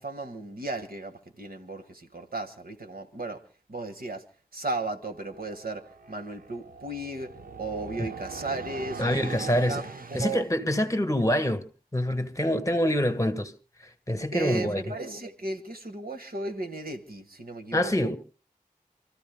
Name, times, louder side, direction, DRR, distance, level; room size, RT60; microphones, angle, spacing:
voice 1, 0.0-3.4 3.7-4.2 4.5-5.8 6.1-7.3 7.6-10.4 14.3-18.1, right 2 dB, 90° right, 1.7 m, -35 dB
sound 1, 5.0-10.5, right 5 dB, 75° right, 0.9 m, -42 dB
voice 2, 9.0-9.9 10.1-11.6 11.9-13.5 14.1-14.8 17.7-18.2, left 1 dB, 20° left, 1.5 m, -25 dB
29.0 x 14.0 x 2.2 m
wide cardioid pair, 45°, 15 cm